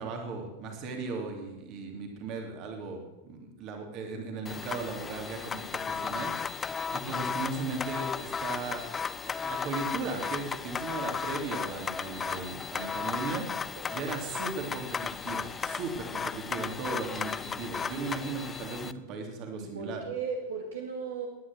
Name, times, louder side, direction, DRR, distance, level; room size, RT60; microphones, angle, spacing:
voice 1, 0.0-8.8 9.2-20.0, right 4 dB, 40° right, 3 dB, 3.0 m, -37 dB
sound 1, 4.5-18.9, left 6 dB, 20° left, 0.5 m, -35 dB
voice 2, 6.9-7.2 14.0-14.1 19.6-21.3, right 5 dB, 60° right, 1 dB, 2.1 m, -37 dB
19.0 x 10.5 x 6.3 m, 1.0 s
figure-of-eight pair, 90°, 0 cm